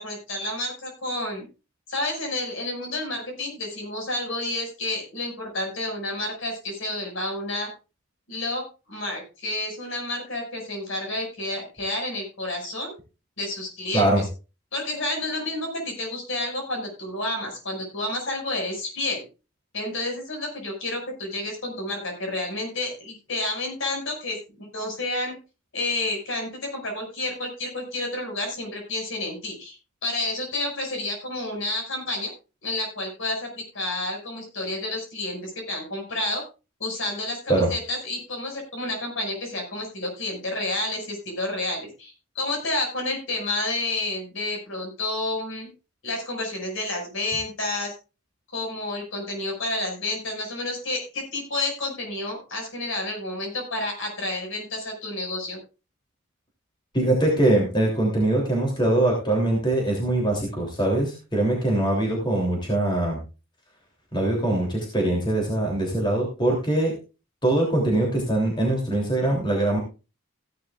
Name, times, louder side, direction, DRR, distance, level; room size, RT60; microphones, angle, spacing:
voice 1, 0.0-1.4 1.9-7.7 8.3-13.0 13.4-14.3 14.7-19.2 19.7-25.3 25.7-29.8 30.0-32.3 32.6-36.4 36.8-45.7 46.0-47.9 48.5-55.6, left 2 dB, 60° left, 2 dB, 5.8 m, -30 dB
voice 2, 56.9-63.2 64.1-66.9 67.4-69.8, right 1 dB, 20° left, 0 dB, 3.1 m, -22 dB
16.0 x 11.5 x 2.5 m, 0.31 s
head